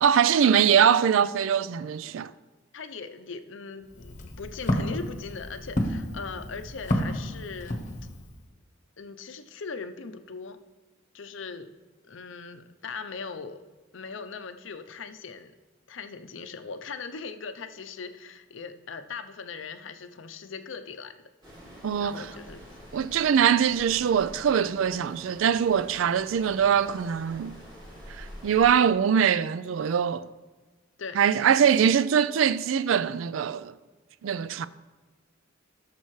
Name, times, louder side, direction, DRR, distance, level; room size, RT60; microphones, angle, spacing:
voice 1, 0.0-2.3 21.8-22.3 22.9-27.5 28.2-30.3 31.2-33.7 34.2-34.7, right 8 dB, 75° right, 0.4 m, -23 dB
voice 2, 2.7-7.8 9.0-10.6 11.1-11.7 12.1-13.6 13.9-15.5 15.9-21.1 22.0-22.6 31.0-31.2, left 5 dB, 65° left, 0.6 m, -39 dB
Walk footsteps, 3.8-8.4, equal, 40° left, 1.0 m, -31 dB
Wind in trees, 21.4-28.8, equal, 25° right, 3.2 m, -47 dB
16.5 x 6.8 x 3.2 m
head